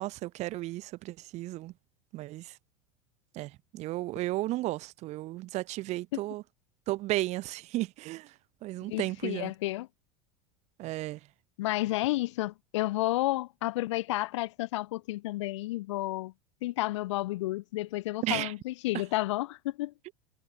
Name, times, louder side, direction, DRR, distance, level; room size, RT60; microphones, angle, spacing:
voice 1, 0.0-1.7 2.1-2.6 3.3-6.4 6.9-8.3 8.6-9.5 10.8-11.2 18.2-18.5 20.0-20.1, right 17 dB, 40° right, 1.3 m, -34 dB
voice 2, 8.9-9.9 11.6-16.3 16.6-19.9, left 18 dB, 55° left, 0.8 m, -31 dB
figure-of-eight pair, 80°, 18 cm